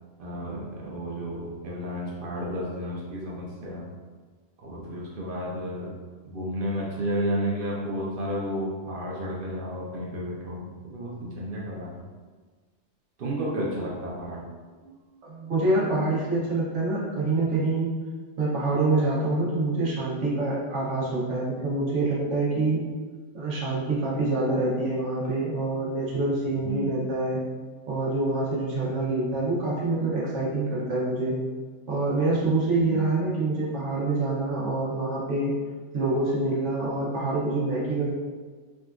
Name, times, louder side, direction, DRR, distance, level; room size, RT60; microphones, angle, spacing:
voice 1, 0.2-3.9 4.6-5.9 6.2-12.0 13.2-14.5 26.6-26.9 32.8-33.1, equal, 60° right, -3 dB, 0.6 m, -32 dB
voice 2, 15.2-17.9 18.4-22.8 23.3-27.4 27.9-31.4 31.9-35.5 35.9-38.1, right 2 dB, 85° right, -6 dB, 1.2 m, -26 dB
3.7 x 2.2 x 2.4 m, 1.4 s
omnidirectional pair, 1.2 m